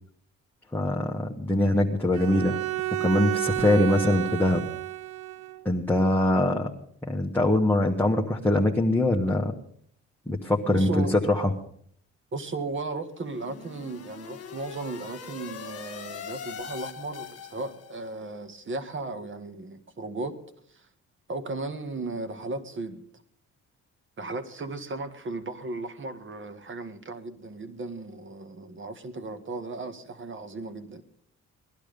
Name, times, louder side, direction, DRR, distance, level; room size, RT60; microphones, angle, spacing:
voice 1, 0.7-2.6 3.0-4.7 5.6-6.7 7.0-9.5 10.3-11.5, left 1 dB, 5° left, 1.4 m, -23 dB
Bowed string instrument, 2.1-5.6, right 16 dB, 90° right, 0.6 m, -31 dB
voice 2, 10.7-11.1 12.3-20.4 20.7-20.9 21.3-23.0 24.2-31.0, right 3 dB, 40° right, 1.8 m, -36 dB
sound 1, 13.1-18.1, left 7 dB, 55° left, 1.7 m, -42 dB
18.5 x 12.0 x 5.2 m
cardioid pair, 90°, 30 cm